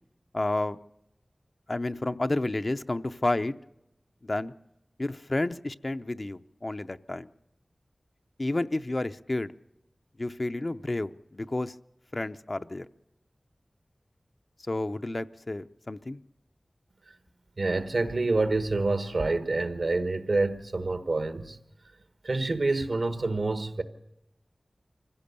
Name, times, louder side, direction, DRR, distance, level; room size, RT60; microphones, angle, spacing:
voice 1, 0.3-0.8 1.7-3.5 4.2-4.5 5.0-7.3 8.4-9.5 10.2-11.8 12.1-12.9 14.7-16.2, left 2 dB, 45° left, 0.6 m, -30 dB
voice 2, 17.6-21.6 22.2-23.8, right 3 dB, 75° right, 1.3 m, -27 dB
24.5 x 15.5 x 6.8 m
wide cardioid pair, 50°, 0 cm